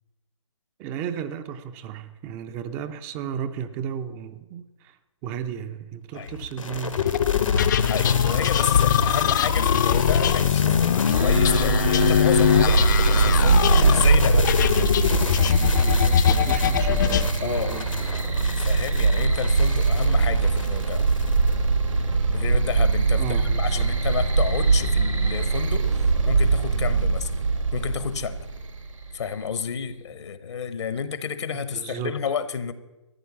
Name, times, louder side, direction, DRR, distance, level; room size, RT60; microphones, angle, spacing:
voice 1, 0.8-5.0 5.2-7.2 15.7-18.1 23.2-23.9 31.5-32.2, right 8 dB, 15° right, 11 dB, 0.4 m, -34 dB
sound 1, 6.3-21.5, left 4 dB, 85° left, 1.6 m, -30 dB
sound 2, 7.0-17.3, left 9 dB, 35° left, 0.5 m, -22 dB
voice 2, 7.8-14.5 17.4-17.8 18.5-21.1 22.3-27.3 27.7-28.4 29.1-32.7, left 6 dB, 60° left, 14 dB, 1.0 m, -31 dB
sound 3, 11.1-29.1, right 4 dB, 85° right, 2.0 m, -22 dB
14.0 x 9.2 x 7.2 m, 1.1 s
figure-of-eight pair, 145°, 16 cm